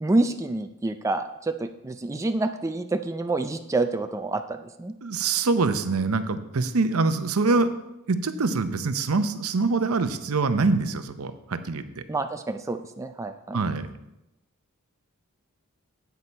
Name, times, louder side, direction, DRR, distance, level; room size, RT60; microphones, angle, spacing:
voice 1, 0.0-4.9 12.1-13.6, right 2 dB, 15° right, 7 dB, 0.3 m, -28 dB
voice 2, 5.0-7.7 8.1-12.0 13.5-13.9, right 3 dB, 75° right, 10 dB, 0.7 m, -24 dB
8.3 x 8.3 x 4.4 m, 0.91 s
head